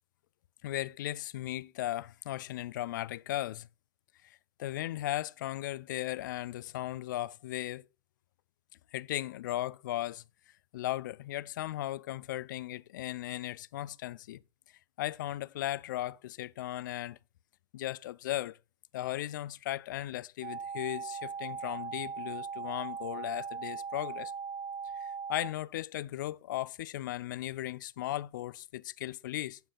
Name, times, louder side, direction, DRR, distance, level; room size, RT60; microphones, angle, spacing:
voice 1, 0.6-3.7 4.2-7.9 8.9-10.2 10.7-14.4 15.0-17.2 17.7-18.6 18.9-24.3 25.0-29.6, left 14 dB, 60° left, 0.4 m, -37 dB
sound 1, 20.4-25.5, right 6 dB, 60° right, 1.6 m, -39 dB
9.2 x 7.1 x 3.8 m
figure-of-eight pair, 90°, 12 cm